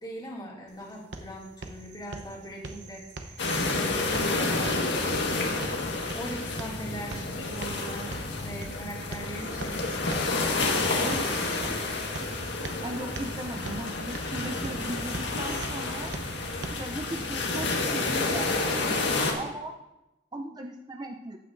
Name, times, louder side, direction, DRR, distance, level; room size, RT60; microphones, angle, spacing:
voice 1, 0.0-11.8, equal, 25° left, -4 dB, 2.4 m, -41 dB
sound 1, 0.7-16.7, right 2 dB, 70° right, 0.9 m, -43 dB
sound 2, 3.4-19.3, left 3 dB, 80° left, 1.5 m, -29 dB
voice 2, 12.8-16.1 16.7-19.7 20.3-21.4, right 1 dB, 25° right, 4 dB, 0.5 m, -38 dB
14.5 x 9.1 x 2.6 m, 0.94 s
head